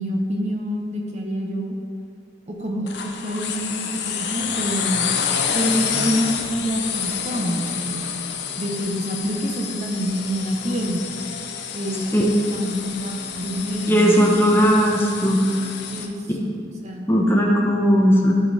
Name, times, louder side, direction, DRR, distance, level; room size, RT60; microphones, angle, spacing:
voice 1, 0.0-1.7 2.5-5.1 5.5-8.1 8.6-11.0 11.7-14.6 15.9-16.1 16.4-16.5 16.8-17.1, equal, 35° right, 1 dB, 0.9 m, -27 dB
sound 1, 2.9-16.1, left 7 dB, 60° left, 0.7 m, -29 dB
voice 2, 13.9-15.4 17.1-18.3, equal, 10° left, -2 dB, 1.0 m, -17 dB
13.0 x 5.4 x 4.1 m, 2.3 s
head